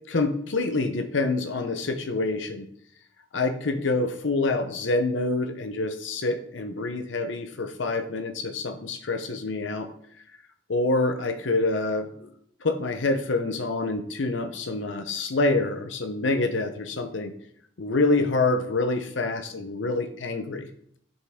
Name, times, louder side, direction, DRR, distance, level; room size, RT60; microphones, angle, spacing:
voice 1, 0.1-2.7 3.3-9.9 10.7-12.3 12.6-17.3 17.8-20.7, left 3 dB, 80° left, 7 dB, 0.7 m, -26 dB
9.8 x 5.4 x 3.6 m, 0.67 s
head